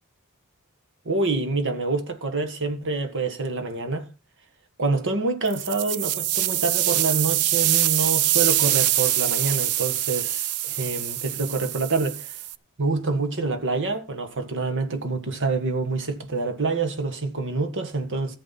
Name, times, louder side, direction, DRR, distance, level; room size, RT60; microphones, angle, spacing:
voice 1, 1.1-4.1 4.8-12.3 12.8-18.4, right 3 dB, 60° right, 1.8 m, -26 dB
sound 1, 5.5-12.6, right 13 dB, 90° right, 0.6 m, -24 dB
14.5 x 7.9 x 4.3 m
head